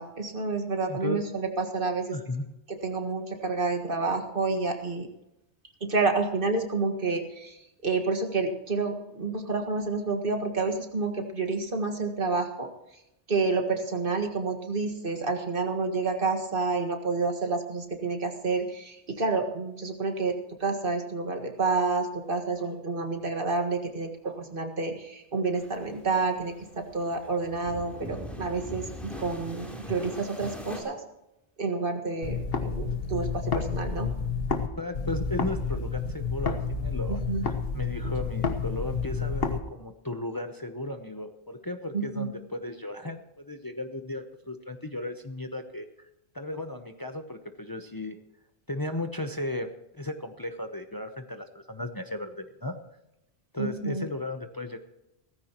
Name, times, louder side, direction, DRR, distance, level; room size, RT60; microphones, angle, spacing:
voice 1, 0.0-2.2 2.7-5.1 5.8-12.7 13.3-20.4 20.6-31.0 31.6-34.1 37.1-37.5 41.9-42.3 53.6-54.1, right 3 dB, 55° right, 5 dB, 1.9 m, -29 dB
voice 2, 0.9-1.2 2.1-2.4 34.8-37.2 37.4-45.8 46.3-48.2 48.7-49.7 49.9-52.7 53.5-54.8, left 2 dB, 20° left, 6 dB, 0.8 m, -35 dB
sound 1, 25.5-30.8, equal, ahead, 3.4 m, -42 dB
sound 2, 32.2-34.7 34.9-39.6, left 5 dB, 65° left, 1.4 m, -30 dB
17.0 x 14.5 x 3.0 m, 0.89 s
omnidirectional pair, 1.1 m